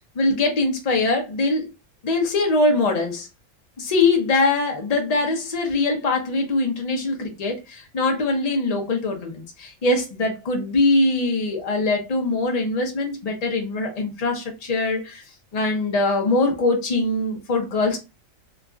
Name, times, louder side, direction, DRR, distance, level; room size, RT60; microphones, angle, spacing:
voice 1, 0.2-1.7 2.0-3.3 3.8-15.2 15.5-18.0, left 2 dB, 40° left, 0.6 m, -22 dB
2.9 x 2.4 x 2.4 m
omnidirectional pair, 1.4 m